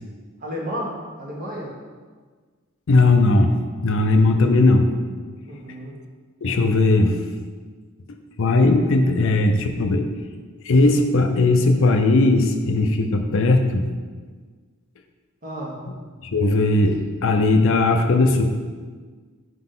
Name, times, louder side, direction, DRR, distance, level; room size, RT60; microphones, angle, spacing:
voice 1, 0.4-1.7 5.5-5.9 15.4-15.8, equal, 40° right, -3 dB, 1.3 m, -32 dB
voice 2, 2.9-3.5 3.8-4.9 6.4-7.2 8.4-10.0 10.6-13.9 16.2-18.4, left 2 dB, 60° left, 6 dB, 0.5 m, -18 dB
5.8 x 5.3 x 3.8 m, 1.5 s
head